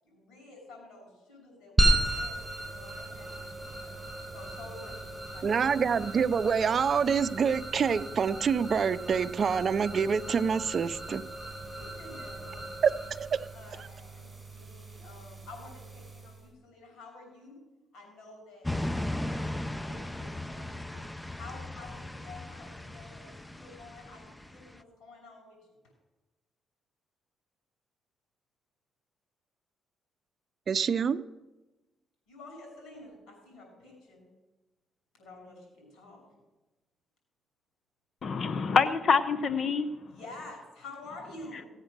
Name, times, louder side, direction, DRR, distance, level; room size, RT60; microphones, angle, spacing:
voice 1, 0.0-3.9 4.3-6.0 11.6-12.6 13.5-17.6 17.9-21.0 21.3-25.6 32.3-34.2 35.2-36.2 40.1-41.7, left 2 dB, 75° left, 1 dB, 6.6 m, -50 dB
sound 1, 1.8-16.4, right 1 dB, 15° right, 4.0 m, -34 dB
voice 2, 5.4-11.2 12.8-13.5 30.7-31.2, right 6 dB, 50° right, 11 dB, 0.5 m, -26 dB
sound 2, 18.6-24.8, left 1 dB, 5° left, 0.6 m, -37 dB
voice 3, 38.2-40.1, left 5 dB, 50° left, 12 dB, 0.8 m, -26 dB
17.0 x 8.0 x 6.7 m, 1.1 s
cardioid pair, 90°, 0 cm